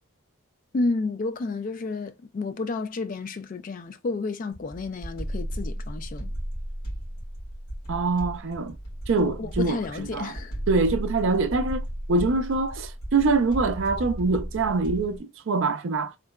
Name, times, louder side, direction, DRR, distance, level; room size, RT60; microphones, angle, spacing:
voice 1, 0.7-6.3 9.2-10.5, left 3 dB, 40° left, 0.3 m, -31 dB
sound 1, 4.5-15.2, equal, 90° left, 2.0 m, -35 dB
voice 2, 7.9-8.8 9.1-9.8 10.1-10.3 10.7-16.1, right 3 dB, 60° right, 0.4 m, -24 dB
3.7 x 2.1 x 2.2 m
head